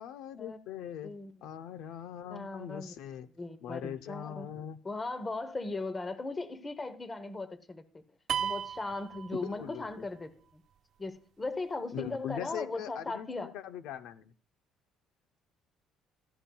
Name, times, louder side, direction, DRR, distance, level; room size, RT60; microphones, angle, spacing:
voice 1, 0.0-1.1 1.4-3.3 3.6-4.8 9.4-9.9 11.9-14.3, left 10 dB, 80° left, 0.7 m, -41 dB
voice 2, 2.3-3.0 3.3-4.5 4.8-8.0 8.4-10.6 11.0-13.5, left 3 dB, 15° left, 0.9 m, -38 dB
sound 1, 8.3-10.0, right 8 dB, 45° right, 0.5 m, -35 dB
16.0 x 13.5 x 2.3 m
cardioid pair, 160°, 0 cm